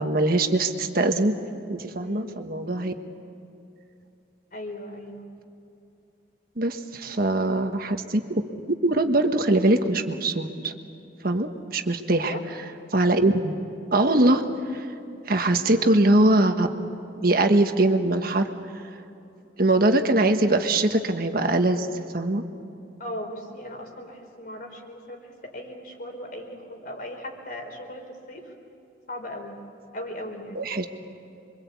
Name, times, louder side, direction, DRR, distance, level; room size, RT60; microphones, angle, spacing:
voice 1, 0.0-1.4 1.7-2.9 6.6-8.4 8.8-10.7 11.2-12.3 12.9-13.5 13.9-14.9 15.3-16.7 17.2-18.5 19.6-22.5 30.5-30.8, right 2 dB, 55° right, 6 dB, 1.4 m, -22 dB
voice 2, 2.0-2.5 4.5-5.3 7.4-7.8 12.3-12.4 15.7-16.1 23.0-28.5 29.1-29.6 29.9-30.7, left 1 dB, 50° left, 3 dB, 4.2 m, -38 dB
28.0 x 24.0 x 8.4 m, 2.7 s
head